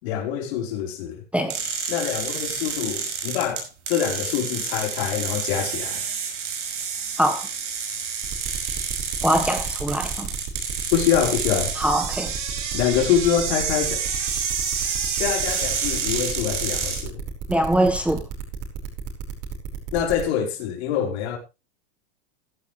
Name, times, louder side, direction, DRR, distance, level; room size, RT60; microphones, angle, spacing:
voice 1, 0.0-1.2 1.9-6.0 10.9-11.7 12.7-14.0 15.1-17.2 19.9-21.4, left 9 dB, 65° left, 4.3 m, -25 dB
sound 1, 1.5-17.0, right 6 dB, 90° right, 5.6 m, -29 dB
sound 2, 8.2-20.2, right 8 dB, 45° right, 5.4 m, -33 dB
voice 2, 9.2-10.3 11.8-12.3 17.5-18.2, right 1 dB, 5° right, 1.3 m, -22 dB
15.0 x 11.0 x 3.3 m
supercardioid pair, 130°, 35 cm